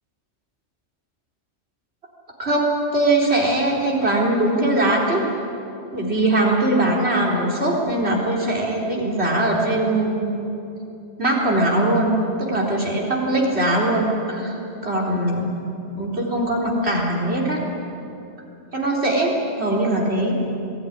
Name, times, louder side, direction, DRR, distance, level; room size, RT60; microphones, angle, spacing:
voice 1, 2.4-5.2 5.9-10.4 11.2-14.6 14.8-15.5 15.9-17.6 18.7-20.3, right 1 dB, 60° right, -2 dB, 4.2 m, -21 dB
21.5 x 17.0 x 10.0 m, 2.8 s
omnidirectional pair, 1.2 m